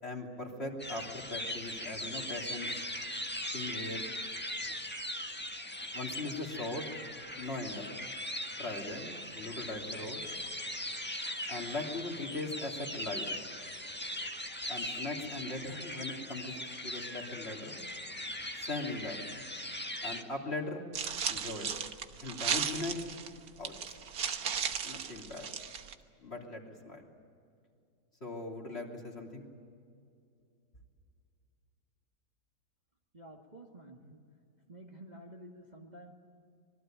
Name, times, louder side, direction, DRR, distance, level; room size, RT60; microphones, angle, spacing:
voice 1, 0.0-2.8 3.5-4.1 5.9-6.8 7.4-7.9 8.6-10.3 11.5-13.3 14.7-17.8 18.6-19.2 20.0-20.9 21.3-21.7 22.2-23.0 23.6-24.0 24.8-25.5 26.2-27.1 28.2-29.5, left 2 dB, 35° left, 0 dB, 3.4 m, -40 dB
sound 1, 0.8-20.2, left 1 dB, 5° left, 1.4 m, -40 dB
sound 2, 20.9-25.9, right 7 dB, 65° right, 1.6 m, -35 dB
voice 2, 33.1-34.2 34.7-36.1, right 1 dB, 25° right, 0 dB, 2.1 m, -51 dB
25.5 x 22.0 x 9.2 m, 2.4 s
omnidirectional pair, 1.8 m